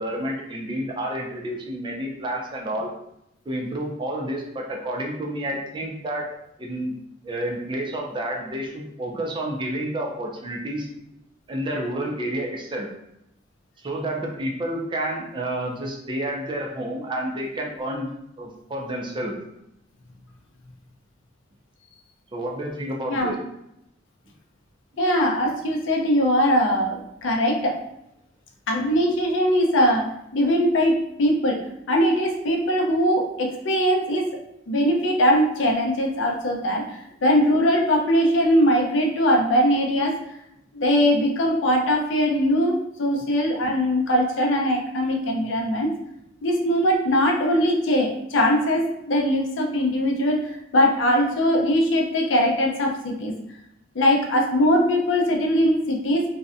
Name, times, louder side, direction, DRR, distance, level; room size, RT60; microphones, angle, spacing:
voice 1, 0.0-2.9 3.5-6.3 6.6-7.0 7.2-10.9 11.5-12.9 13.8-18.1 18.4-19.3 22.3-23.4, right 1 dB, 25° right, 0 dB, 0.4 m, -29 dB
voice 2, 25.0-27.8 28.7-34.3 34.7-40.2 40.7-46.0 46.4-50.4 50.7-53.3 53.9-56.3, equal, 70° left, 1 dB, 0.5 m, -21 dB
2.6 x 2.1 x 2.4 m, 0.81 s
head